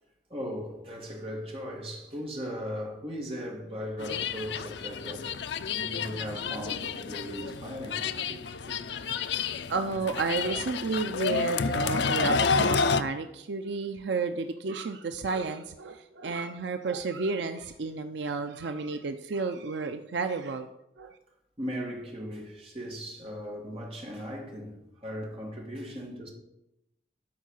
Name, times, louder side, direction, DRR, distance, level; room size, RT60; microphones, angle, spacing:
voice 1, 0.3-8.4 8.7-8.8 21.6-26.3, equal, 30° right, 2.1 m, -38 dB
sound 1, 4.0-13.0, left 5 dB, 70° left, 0.5 m, -30 dB
voice 2, 8.9-9.4 9.7-20.7 21.0-21.2, right 4 dB, 75° right, 0.5 m, -32 dB
12.0 x 4.6 x 6.4 m
head